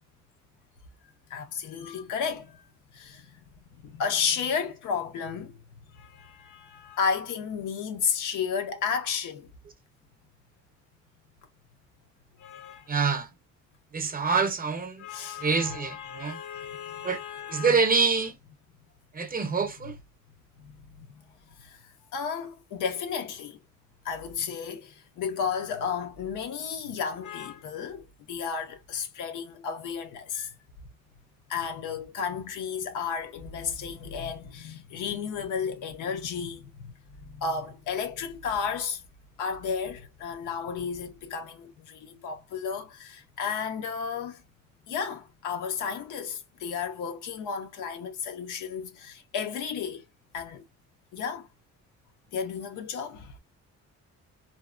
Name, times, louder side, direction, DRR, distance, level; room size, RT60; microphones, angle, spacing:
voice 1, 1.3-2.6 2.9-3.4 3.8-5.6 5.9-9.5 12.4-12.9 15.0-17.8 20.6-21.2 21.6-21.8 22.1-23.6 24.0-30.5 31.5-39.0 39.4-44.4 44.9-50.0 50.3-50.6 51.1-51.5 52.3-53.4, left 6 dB, 85° left, 0.7 m, -33 dB
voice 2, 12.9-13.3 13.9-15.0 15.4-16.4 17.0-17.2 17.5-18.4 19.1-20.0, right 5 dB, 30° right, 0.6 m, -26 dB
2.6 x 2.0 x 2.4 m
cardioid pair, 90°, 30 cm